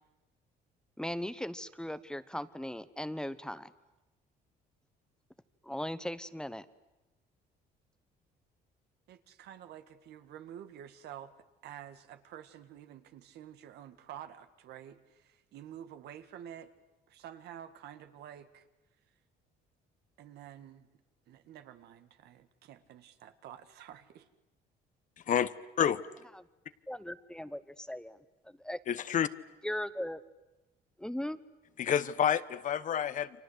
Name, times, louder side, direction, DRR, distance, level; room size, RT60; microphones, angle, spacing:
voice 1, 1.0-3.7 5.6-6.7 26.3-26.5 26.9-28.8 29.6-30.2 31.0-31.4, left 1 dB, 5° left, 14 dB, 1.1 m, -38 dB
voice 2, 9.1-11.3 11.6-16.7 17.1-18.6 20.2-20.9 21.3-24.3, right 10 dB, 75° right, 10 dB, 1.8 m, -49 dB
voice 3, 28.9-29.3 31.8-33.4, left 9 dB, 50° left, 14 dB, 1.1 m, -29 dB
29.5 x 25.0 x 8.0 m, 1.0 s
cardioid pair, 110°, 17 cm